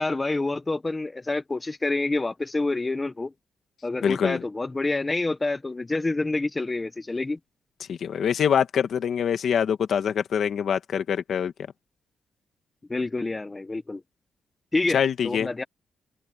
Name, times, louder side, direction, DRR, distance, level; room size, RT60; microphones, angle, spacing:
voice 1, 0.0-3.3 3.8-7.4 12.9-14.0 14.7-15.0 15.2-15.6, left 2 dB, 15° left, 0.9 m, -27 dB
voice 2, 4.0-4.4 7.9-11.5 14.9-15.5, left 8 dB, 60° left, 1.6 m, -24 dB
wide cardioid pair, 165°, 0 cm